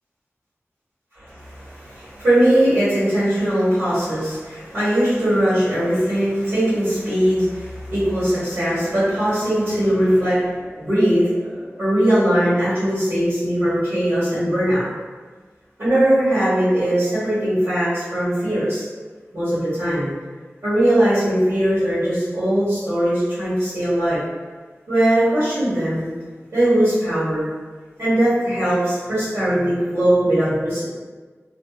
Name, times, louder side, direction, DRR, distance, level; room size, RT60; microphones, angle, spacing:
voice 1, 1.2-14.8 15.8-18.8 19.3-20.1 20.6-24.2 24.9-26.1 26.5-27.4 28.0-30.8, right 1 dB, 70° right, -14 dB, 1.2 m, -20 dB
2.6 x 2.2 x 2.3 m, 1.4 s
wide cardioid pair, 55°, 5 cm